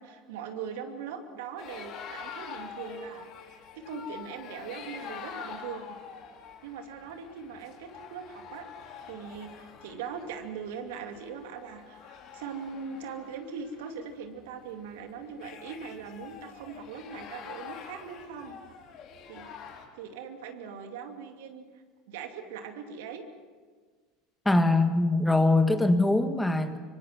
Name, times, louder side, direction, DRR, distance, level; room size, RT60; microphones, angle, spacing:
voice 1, 0.0-6.0 6.6-8.7 9.1-18.6 19.3-19.5 19.9-21.6 22.1-23.2, right 6 dB, 70° right, 5 dB, 2.6 m, -40 dB
sound 1, 1.6-19.8, left 7 dB, 50° left, 4.0 m, -46 dB
voice 2, 24.5-26.8, left 2 dB, 5° left, 7 dB, 1.9 m, -22 dB
25.5 x 25.0 x 6.1 m, 1.5 s
hypercardioid pair, 75°, 0 cm